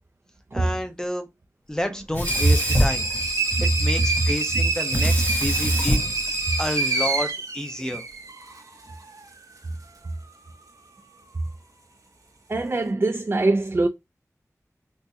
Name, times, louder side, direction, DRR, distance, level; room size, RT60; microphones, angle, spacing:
voice 1, 0.5-1.3 1.7-3.1 3.6-5.1 5.4-6.0 6.6-8.0, equal, 10° left, 0.7 m, -29 dB
Sink (filling or washing), 2.1-3.8 4.9-7.2, left 1 dB, 30° left, 1.0 m, -27 dB
sound 1, 2.2-8.6, right 2 dB, 80° right, 0.8 m, -27 dB
voice 2, 12.5-13.9, right 2 dB, 45° right, 0.4 m, -23 dB
3.5 x 2.6 x 2.7 m
wide cardioid pair, 55°, 6 cm